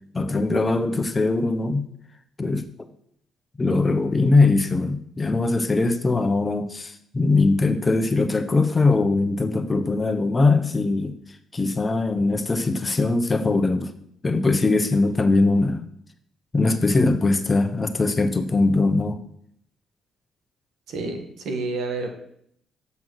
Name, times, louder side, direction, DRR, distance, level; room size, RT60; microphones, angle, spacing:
voice 1, 0.1-1.9 2.4-2.7 3.6-11.2 11.5-13.9 14.2-15.9 16.5-19.2, left 3 dB, 25° left, 9 dB, 0.8 m, -21 dB
voice 2, 20.9-22.1, right 3 dB, 75° right, 4 dB, 1.6 m, -29 dB
7.8 x 5.7 x 6.3 m, 0.70 s
cardioid pair, 90°, 0 cm